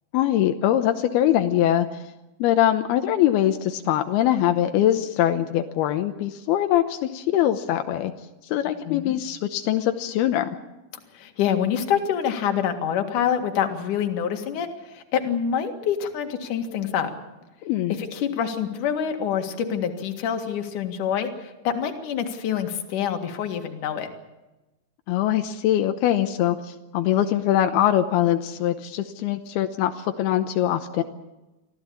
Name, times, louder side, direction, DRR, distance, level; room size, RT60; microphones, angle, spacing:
voice 1, 0.1-1.9 2.4-8.1 8.4-10.5 17.6-18.0 25.1-31.0, left 12 dB, 85° left, 7 dB, 2.9 m, -22 dB
voice 2, 8.9-9.2 11.1-17.1 18.0-24.1, left 8 dB, 60° left, 5 dB, 3.2 m, -26 dB
25.5 x 15.5 x 8.7 m, 1.0 s
omnidirectional pair, 4.4 m